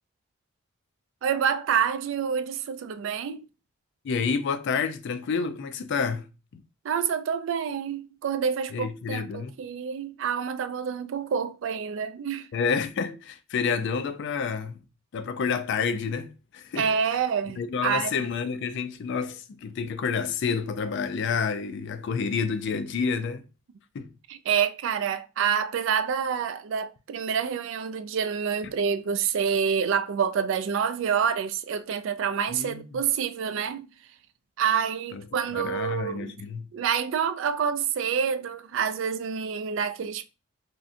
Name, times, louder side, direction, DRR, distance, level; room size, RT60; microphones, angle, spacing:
voice 1, 1.2-3.5 6.8-12.5 16.8-18.3 24.3-33.9 34.6-36.4 36.7-40.3, right 7 dB, 60° right, 0.3 m, -27 dB
voice 2, 4.0-6.6 8.7-9.5 12.5-14.8 15.1-16.9 17.6-23.4 23.9-24.1 32.5-33.0 35.1-35.2 35.5-36.7, left 5 dB, 55° left, 0.3 m, -29 dB
2.5 x 2.1 x 3.6 m
head